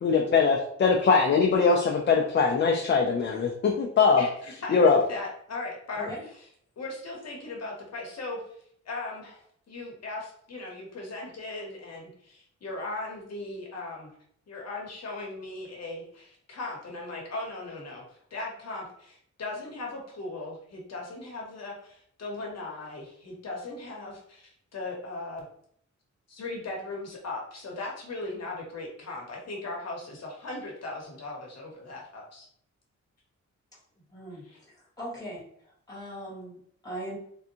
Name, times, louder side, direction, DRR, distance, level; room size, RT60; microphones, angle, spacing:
voice 1, 0.0-4.2 4.7-5.0, left 5 dB, 40° left, 1 dB, 0.4 m, -22 dB
voice 2, 4.2-6.1 6.8-8.4 8.9-14.1 14.5-25.4 26.3-32.5 34.4-34.6, left 2 dB, 60° left, -1 dB, 0.9 m, -38 dB
voice 3, 5.9-6.2 34.1-35.4 35.9-37.2, equal, 10° left, -5 dB, 1.4 m, -39 dB
3.4 x 2.6 x 2.8 m, 0.65 s
wide cardioid pair, 175°, 29 cm